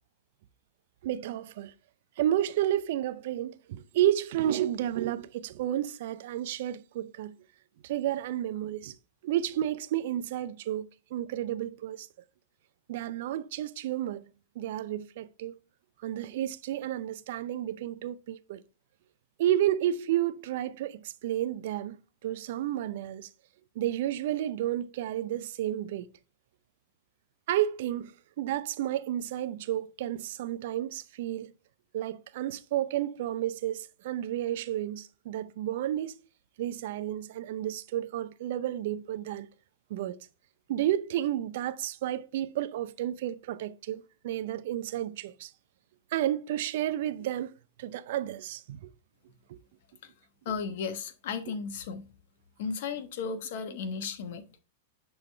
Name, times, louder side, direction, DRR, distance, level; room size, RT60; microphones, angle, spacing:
voice 1, 1.0-1.7 2.2-7.3 7.8-8.9 9.2-12.1 12.9-14.2 14.6-15.5 16.0-18.6 19.4-22.0 22.2-23.3 23.8-26.1 27.5-28.1 28.4-31.5 31.9-36.2 36.6-39.5 39.9-40.3 40.7-45.5 46.1-47.5 47.8-48.9 49.5-49.6, right 12 dB, 60° right, 0.6 m, -31 dB
voice 2, 50.4-52.1 52.6-54.4, left 5 dB, 55° left, 1.1 m, -35 dB
10.0 x 3.5 x 3.3 m
figure-of-eight pair, 100°, 0 cm